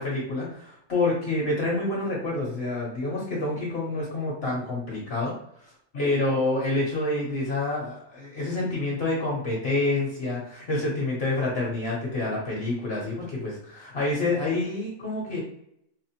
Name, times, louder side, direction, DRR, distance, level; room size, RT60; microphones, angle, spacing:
voice 1, 0.0-5.3 5.9-15.4, left 2 dB, 50° left, -4 dB, 1.1 m, -28 dB
4.2 x 2.0 x 2.8 m, 0.74 s
omnidirectional pair, 1.6 m